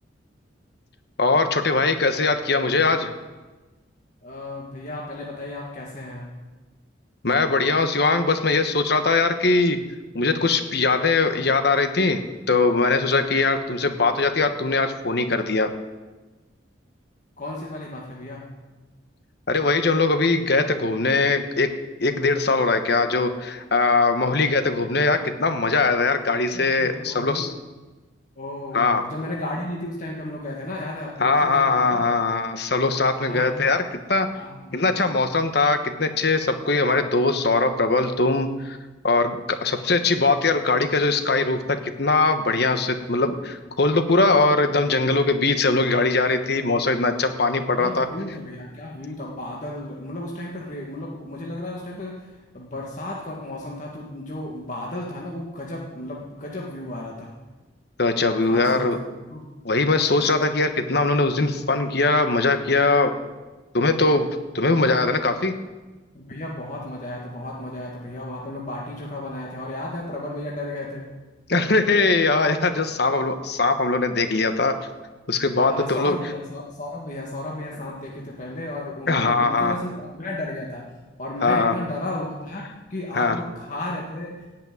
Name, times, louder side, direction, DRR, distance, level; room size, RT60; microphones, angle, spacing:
voice 1, 1.2-3.1 7.2-9.8 10.1-12.2 12.5-15.7 19.5-21.7 22.0-27.5 28.7-29.0 31.2-34.3 34.7-38.8 39.0-48.1 58.0-59.0 59.6-63.1 63.7-64.3 64.5-65.5 71.5-74.7 75.3-76.2 79.1-79.7 81.4-81.8 83.1-83.4, left 3 dB, 60° left, 8 dB, 1.2 m, -21 dB
voice 2, 4.2-6.3 17.4-18.5 26.5-27.5 28.4-32.1 33.2-33.7 34.3-34.9 47.8-57.3 58.4-58.9 59.3-59.7 66.1-71.1 75.6-80.8 81.2-82.6 82.9-84.3, left 1 dB, 40° left, -3 dB, 1.7 m, -34 dB
17.0 x 6.0 x 9.1 m, 1.2 s
head